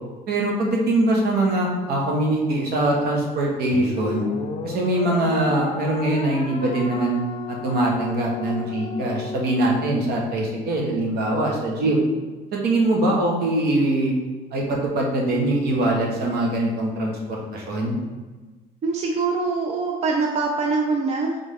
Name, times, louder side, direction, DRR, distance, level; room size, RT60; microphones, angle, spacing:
voice 1, 0.3-4.2 4.6-7.2 7.5-12.0 12.5-14.1 14.5-17.9, right 1 dB, 70° right, -1 dB, 1.2 m, -22 dB
sound 1, 3.7-10.2, left 5 dB, 35° left, 0.5 m, -33 dB
voice 2, 18.8-21.4, right 4 dB, 40° right, 1 dB, 0.5 m, -23 dB
4.0 x 3.5 x 3.5 m, 1.3 s
cardioid pair, 110°, 17 cm